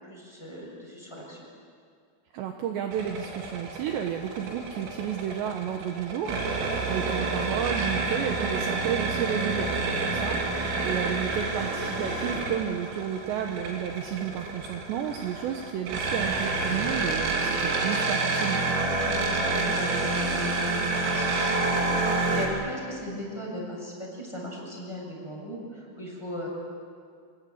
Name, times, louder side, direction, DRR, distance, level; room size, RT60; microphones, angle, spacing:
voice 1, 0.0-1.5 10.0-10.2 10.7-10.8 18.9-26.5, equal, 5° left, -2 dB, 6.5 m, -38 dB
voice 2, 2.3-18.8, right 9 dB, 70° right, 4 dB, 3.0 m, -32 dB
sound 1, 2.9-22.5, right 3 dB, 90° right, 5.6 m, -28 dB
26.0 x 21.5 x 8.7 m, 2.2 s
omnidirectional pair, 5.8 m